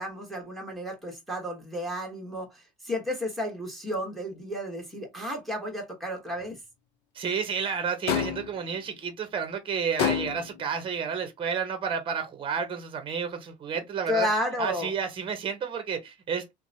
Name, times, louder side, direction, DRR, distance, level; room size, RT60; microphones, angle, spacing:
voice 1, 0.0-6.6 14.1-14.9, left 1 dB, ahead, 1.1 m, -32 dB
voice 2, 7.1-14.3 14.6-16.5, right 6 dB, 30° right, 0.8 m, -31 dB
sound 1, 8.1-8.6 10.0-10.6, left 8 dB, 80° left, 0.7 m, -27 dB
2.9 x 2.1 x 2.6 m
cardioid pair, 115°, 17 cm